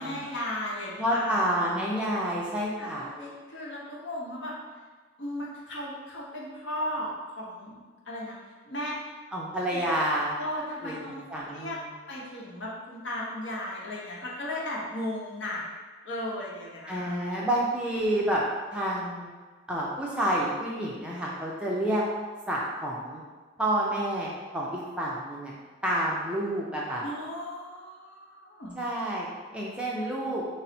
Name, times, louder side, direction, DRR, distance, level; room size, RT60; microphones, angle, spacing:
voice 1, 0.0-1.4 2.8-4.5 5.2-7.8 8.1-8.4 8.7-8.9 9.7-9.8 10.4-11.8 12.1-15.6 16.0-17.2 27.0-28.7, left 1 dB, 70° left, -4 dB, 0.8 m, -36 dB
voice 2, 1.0-3.1 9.3-10.3 10.8-11.9 16.9-18.4 18.7-19.3 19.7-22.0 22.5-23.2 23.6-25.5 25.8-27.0 28.8-29.3 29.5-30.4, right 1 dB, 5° right, -5 dB, 0.4 m, -29 dB
3.9 x 2.0 x 4.1 m, 1.4 s
head